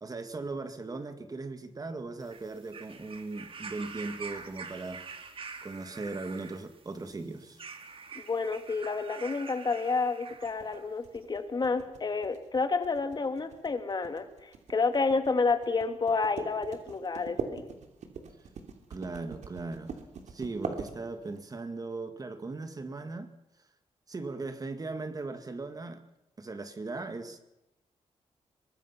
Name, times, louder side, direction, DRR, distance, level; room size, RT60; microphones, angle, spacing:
voice 1, 0.0-5.0 5.6-7.6 18.9-19.9 20.3-23.3 24.1-26.0 26.4-27.4, right 3 dB, 30° right, 2.0 m, -38 dB
sound 1, 2.2-10.9 11.8-11.9, right 5 dB, 50° right, 2.3 m, -46 dB
voice 2, 8.2-17.7, left 4 dB, 35° left, 1.9 m, -30 dB
sound 2, 10.4-21.5, right 5 dB, 75° right, 3.1 m, -42 dB
24.0 x 20.5 x 5.8 m
wide cardioid pair, 115°, 12 cm